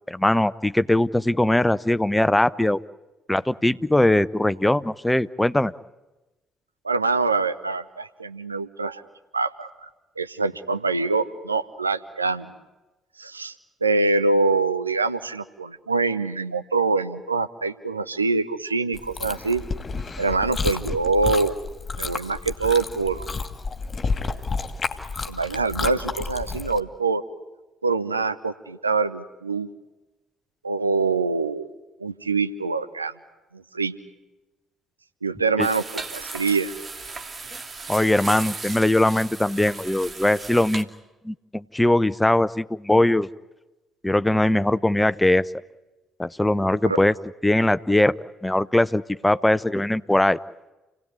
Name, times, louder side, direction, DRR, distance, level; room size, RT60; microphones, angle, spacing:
voice 1, 0.0-2.8 3.3-5.7 35.6-35.7 37.9-40.9 41.2-43.3 44.0-45.5 46.2-47.1 47.4-48.2 48.4-50.4, left 1 dB, 10° left, 15 dB, 0.8 m, -21 dB
voice 2, 6.8-9.0 9.3-9.7 10.2-12.5 13.2-13.5 13.8-19.6 20.2-21.6 22.0-23.3 25.3-27.2 27.8-29.7 30.6-31.7 32.0-33.1 33.5-33.9 35.2-36.7 46.8-47.0, right 3 dB, 90° right, 12 dB, 0.8 m, -24 dB
Chewing mastication, 18.9-26.8, left 4 dB, 35° left, 2.3 m, -30 dB
sound 1, 35.6-40.8, right 4 dB, 35° right, 2.5 m, -36 dB
29.0 x 18.0 x 9.7 m, 1.1 s
figure-of-eight pair, 45°, 0 cm